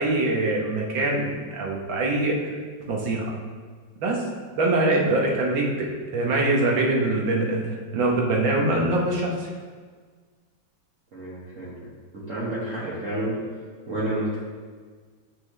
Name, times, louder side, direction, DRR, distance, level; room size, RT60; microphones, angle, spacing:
voice 1, 0.0-2.4 2.9-3.3 4.0-4.2 4.6-5.9 6.1-9.5, right 2 dB, 70° right, -1 dB, 1.8 m, -23 dB
voice 2, 11.1-11.7 12.1-13.4 13.9-14.4, right 1 dB, 40° right, -10 dB, 1.6 m, -29 dB
9.5 x 4.3 x 3.2 m, 1.5 s
omnidirectional pair, 2.2 m